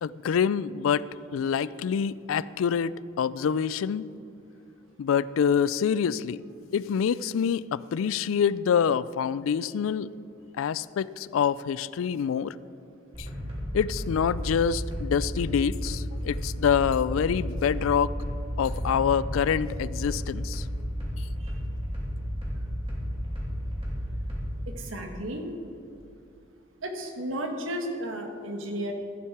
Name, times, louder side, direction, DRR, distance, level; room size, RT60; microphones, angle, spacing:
voice 1, 0.0-1.1 1.3-2.9 3.2-4.0 5.0-6.4 6.7-10.1 10.6-12.5 13.7-18.1 18.6-20.6, left 7 dB, 80° left, 18 dB, 0.3 m, -26 dB
sound 1, 13.1-24.4, equal, 30° right, 2.8 m, -33 dB
voice 2, 24.7-25.5 26.8-28.9, right 1 dB, 75° right, 3 dB, 1.5 m, -33 dB
14.0 x 9.2 x 4.7 m, 2.6 s
head